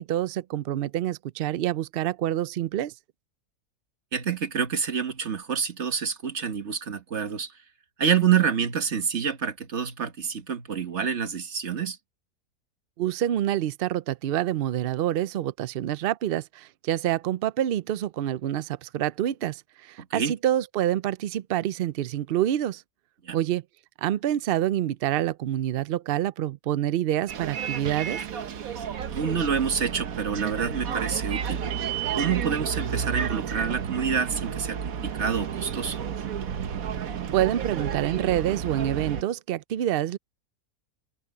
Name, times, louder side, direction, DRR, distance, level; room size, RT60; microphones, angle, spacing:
voice 1, 0.0-2.9 13.0-22.8 23.3-23.6 24.0-28.2 37.3-40.2, right 12 dB, 90° right, 0.5 m, -27 dB
voice 2, 4.1-7.5 8.0-12.0 20.0-20.3 23.2-23.4 29.1-31.6 32.2-36.0, right 7 dB, 50° right, 1.7 m, -27 dB
Bus, 27.3-39.2, right 8 dB, 65° right, 1.4 m, -31 dB
open air
omnidirectional pair, 1.6 m